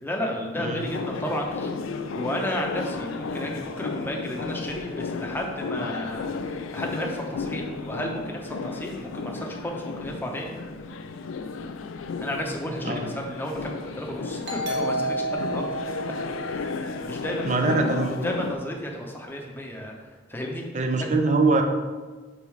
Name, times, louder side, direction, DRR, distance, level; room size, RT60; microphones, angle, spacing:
voice 1, 0.0-10.5 12.2-15.7 16.5-19.9 20.3-20.6 21.0-21.1, equal, 10° left, 0 dB, 0.8 m, -33 dB
sound 1, 0.8-18.5, left 4 dB, 75° left, 0.4 m, -34 dB
Doorbell, 14.4-17.8, right 1 dB, 65° right, 1.4 m, -31 dB
voice 2, 17.4-18.2 20.7-21.6, right 3 dB, 40° right, 5 dB, 0.6 m, -23 dB
5.5 x 4.0 x 4.6 m, 1.3 s
head